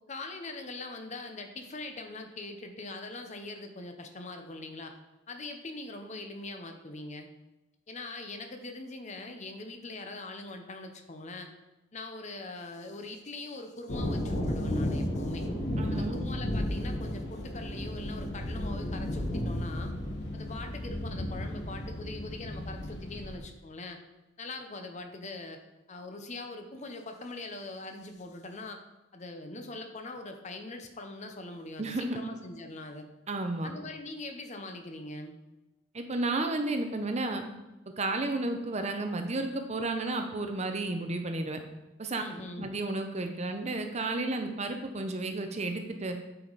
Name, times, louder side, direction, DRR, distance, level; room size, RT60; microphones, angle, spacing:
voice 1, 0.1-4.9 5.3-7.3 7.9-11.5 11.9-15.5 15.9-19.9 20.3-24.0 24.4-25.6 25.9-28.8 29.1-33.1 33.6-35.3 42.2-42.7, left 2 dB, 35° left, 5 dB, 0.7 m, -42 dB
sound 1, 13.9-23.4, left 1 dB, 60° left, 1.3 m, -33 dB
voice 2, 15.8-16.2 31.8-32.2 33.3-33.7 35.9-37.4 38.0-41.6 42.0-42.2 42.6-46.2, right 2 dB, 35° right, 6 dB, 0.7 m, -32 dB
8.8 x 4.9 x 4.0 m, 1.0 s
head